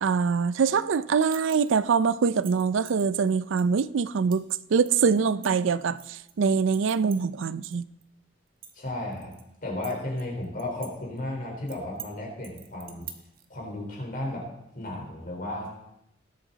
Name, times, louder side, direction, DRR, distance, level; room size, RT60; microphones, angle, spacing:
voice 1, 0.0-7.8, right 5 dB, 75° right, 0.4 m, -24 dB
sound 1, 1.3-1.8 2.2-3.0 3.6-3.7 4.3-4.5 4.8-6.3 6.7-7.7 8.0-8.1 8.5-9.4 9.8-10.9 11.2-11.3 11.7-12.1 12.4-13.4, right 10 dB, 50° right, 1.0 m, -45 dB
voice 2, 8.7-13.1 13.5-14.5 14.7-15.7, left 1 dB, 45° left, 4.0 m, -34 dB
19.0 x 8.1 x 4.0 m
head